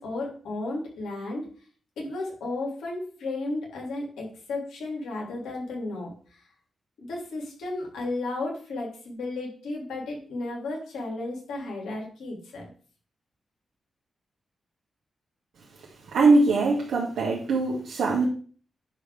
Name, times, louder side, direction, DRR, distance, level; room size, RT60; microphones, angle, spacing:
voice 1, 0.0-1.4 2.0-6.1 7.0-12.7, left 2 dB, 90° left, -1 dB, 3.4 m, -33 dB
voice 2, 16.1-18.3, right 3 dB, 85° right, -5 dB, 2.3 m, -22 dB
10.0 x 3.6 x 7.0 m, 0.42 s
cardioid pair, 50°, 0 cm